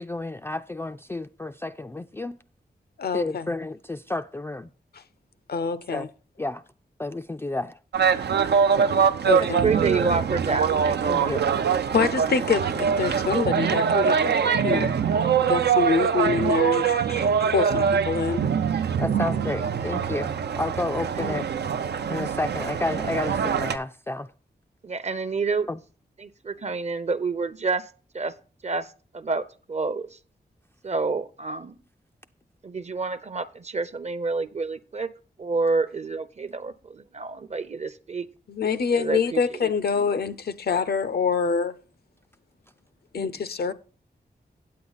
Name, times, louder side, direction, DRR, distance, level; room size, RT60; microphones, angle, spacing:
voice 1, 0.0-2.4 3.1-4.7 5.9-6.1 6.4-6.6 7.0-7.8 11.1-11.5 19.0-21.5 22.1-24.3 25.7-25.8 43.2-43.3, left 2 dB, 15° left, 0.3 m, -31 dB
voice 2, 3.0-3.5 5.5-6.1 9.3-9.7 11.9-14.9 15.4-18.4 38.5-41.7 43.1-43.7, left 5 dB, 70° left, 0.6 m, -26 dB
sound 1, 7.9-23.8, right 7 dB, 85° right, 0.6 m, -23 dB
voice 3, 9.4-11.4 21.2-21.3 24.8-25.7 26.2-27.8 28.1-28.3 28.6-28.9 29.1-30.1 30.8-31.8 32.6-35.1 35.4-38.3 38.9-39.7 40.0-40.1, right 4 dB, 40° right, 0.7 m, -28 dB
8.5 x 8.4 x 4.0 m
wide cardioid pair, 85°, 17 cm